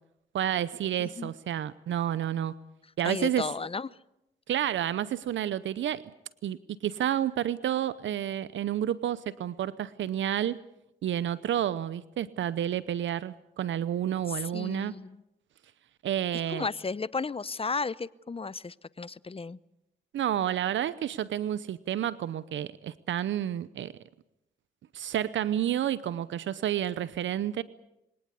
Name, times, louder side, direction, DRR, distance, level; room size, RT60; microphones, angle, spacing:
voice 1, 0.3-2.5 3.0-3.4 4.5-6.0 6.4-6.6 6.8-10.6 11.0-14.9 16.0-16.7 20.1-23.9 24.9-27.6, right 11 dB, 80° right, 17 dB, 0.7 m, -30 dB
voice 2, 1.0-1.3 3.0-4.0 14.3-15.2 16.5-19.6, left 4 dB, 30° left, 19 dB, 0.8 m, -34 dB
23.0 x 18.0 x 8.3 m, 0.87 s
supercardioid pair, 50°, 19 cm